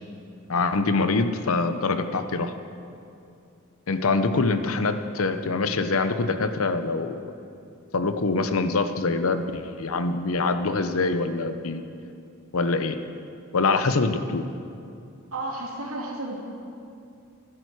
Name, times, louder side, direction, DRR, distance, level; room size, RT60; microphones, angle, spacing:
voice 1, 0.5-2.5 3.9-7.3 7.9-11.8 12.5-13.0 13.5-14.4, left 3 dB, 75° left, 9 dB, 0.8 m, -24 dB
voice 2, 15.3-16.3, right 2 dB, 80° right, -1 dB, 2.3 m, -32 dB
15.0 x 12.5 x 4.7 m, 2.6 s
head